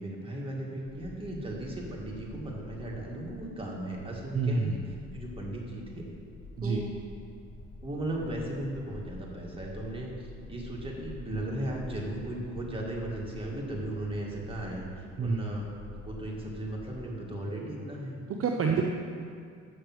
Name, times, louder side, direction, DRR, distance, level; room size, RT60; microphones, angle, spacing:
voice 1, 0.0-4.8 5.1-6.0 6.6-7.0 7.8-14.9 15.2-15.6 15.9-18.2 18.8-18.9, right 1 dB, 20° right, -2 dB, 1.9 m, -36 dB
sound 1, 0.8-17.1, left 2 dB, 85° left, 1.4 m, -47 dB
voice 2, 4.3-4.8 6.6-6.8 15.2-15.6 18.3-18.8, right 5 dB, 50° right, 2 dB, 0.6 m, -28 dB
6.9 x 6.5 x 6.1 m, 2.3 s
cardioid pair, 90°, 30 cm